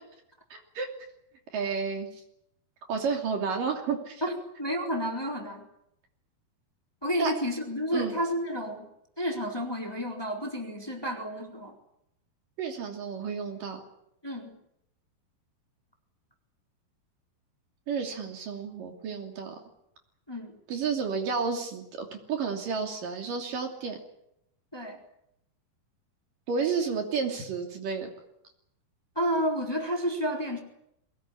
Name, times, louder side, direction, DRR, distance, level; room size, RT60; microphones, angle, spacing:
voice 1, 0.5-0.9 1.5-2.1 2.9-4.2 7.2-7.3 7.9-8.2 12.6-13.8 17.9-19.6 20.7-24.0 26.5-28.1, right 5 dB, 60° right, 3 dB, 4.4 m, -31 dB
voice 2, 4.2-5.6 7.0-8.9 9.2-11.8 14.2-14.6 20.3-20.5 24.7-25.0 29.1-30.6, equal, 5° left, 2 dB, 3.3 m, -31 dB
23.0 x 19.5 x 10.0 m, 0.79 s
omnidirectional pair, 4.4 m